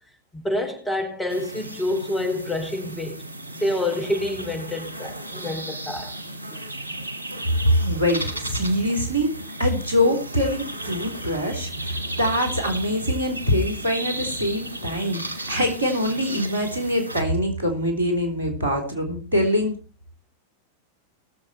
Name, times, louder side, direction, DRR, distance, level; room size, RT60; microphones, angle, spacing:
voice 1, 0.3-3.2 3.6-6.1 6.5-6.6, left 1 dB, 10° left, 4.4 m, -27 dB
sound 1, 1.3-17.2, right 1 dB, 85° left, 1.8 m, -35 dB
voice 2, 7.8-9.3 9.6-19.7, equal, 75° right, 3.5 m, -24 dB
19.5 x 7.6 x 4.4 m
figure-of-eight pair, 90°, 0 cm